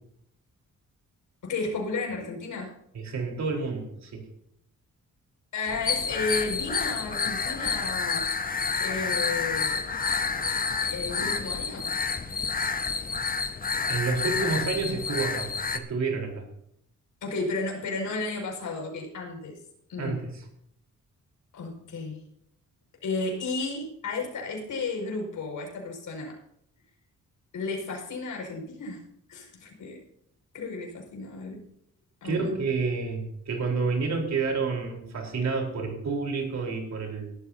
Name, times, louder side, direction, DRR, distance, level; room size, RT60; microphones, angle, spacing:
voice 1, 1.4-2.7 5.5-8.3 8.8-9.8 10.8-11.9 17.2-19.6 19.9-20.2 21.5-22.2 23.0-26.4 27.5-29.0 29.3-30.0 30.5-31.6 32.2-32.5, left 3 dB, 80° left, 1 dB, 5.9 m, -33 dB
voice 2, 2.9-4.2 13.9-16.5 20.0-20.4 32.2-37.3, right 4 dB, 60° right, 1 dB, 4.2 m, -29 dB
sound 1, 5.7-15.8, left 5 dB, 30° left, 0.9 m, -29 dB
19.0 x 13.0 x 2.8 m, 0.73 s
wide cardioid pair, 170°, 31 cm